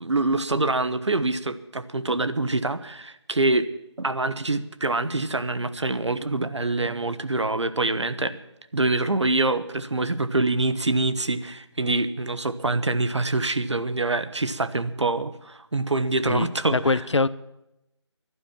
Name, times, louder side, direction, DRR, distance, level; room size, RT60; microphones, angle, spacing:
voice 1, 0.0-3.7 4.0-8.4 8.7-17.0, right 2 dB, 70° right, 12 dB, 1.1 m, -25 dB
voice 2, 16.3-17.3, left 3 dB, 70° left, 18 dB, 0.7 m, -23 dB
11.5 x 10.5 x 8.9 m, 0.89 s
figure-of-eight pair, 160°, 15 cm